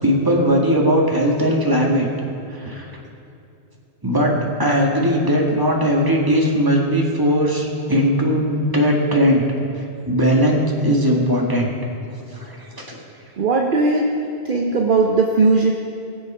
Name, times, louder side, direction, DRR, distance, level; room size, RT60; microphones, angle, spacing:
voice 1, 0.0-2.1 2.5-2.9 4.0-9.4 10.1-11.7 12.3-13.0, equal, 20° right, -2 dB, 1.9 m, -18 dB
voice 2, 13.4-14.1 14.4-15.7, right 3 dB, 50° right, 1 dB, 1.0 m, -17 dB
19.5 x 7.6 x 5.5 m, 2.7 s
omnidirectional pair, 1.1 m